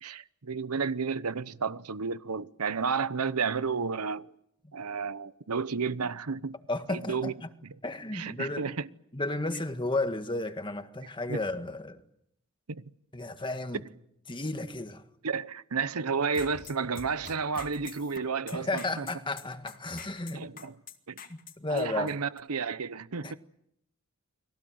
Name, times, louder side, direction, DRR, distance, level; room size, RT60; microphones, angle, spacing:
voice 1, 0.0-4.3 4.7-6.5 6.9-7.3 7.6-7.8 8.1-8.9 11.3-11.4 12.7-12.9 15.2-19.1 20.3-20.8 21.1-21.2 21.7-23.4, right 5 dB, 85° right, 0.9 m, -32 dB
voice 2, 6.7-7.5 7.8-8.7 9.1-12.0 13.1-13.8 14.3-15.0 18.5-20.5 21.3-22.1 23.2-23.3, left 2 dB, 20° left, 1.7 m, -33 dB
sound 1, 16.2-22.4, left 5 dB, 40° left, 2.2 m, -46 dB
29.5 x 22.5 x 7.9 m
head